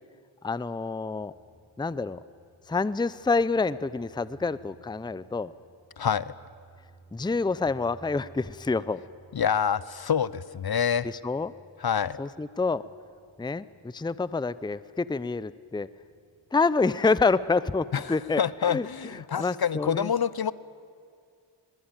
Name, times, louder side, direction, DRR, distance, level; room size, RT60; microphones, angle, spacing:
voice 1, 0.4-1.3 1.8-2.2 2.7-5.5 7.1-9.0 11.0-11.5 12.2-12.8 13.4-15.9 16.5-20.1, left 4 dB, 10° left, 17 dB, 0.6 m, -27 dB
sound 1, 1.2-19.0, right 2 dB, 10° right, 7.1 m, -58 dB
voice 2, 6.0-6.3 9.3-11.1 11.8-12.2 17.9-20.5, left 7 dB, 50° left, 19 dB, 0.7 m, -27 dB
21.5 x 21.5 x 9.0 m, 2.3 s
cardioid pair, 45°, 49 cm